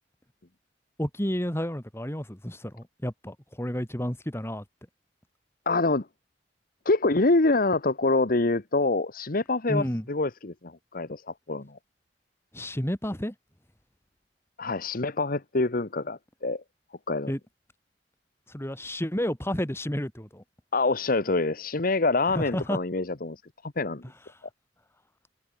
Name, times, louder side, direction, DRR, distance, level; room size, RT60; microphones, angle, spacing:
voice 1, 1.0-4.6 9.7-10.0 12.5-13.3 17.3-17.4 18.5-20.4 22.3-22.8, equal, 15° left, 3.2 m, -31 dB
voice 2, 5.7-6.1 6.8-11.8 14.6-16.6 17.1-17.3 20.7-24.0, left 3 dB, 50° left, 1.2 m, -26 dB
head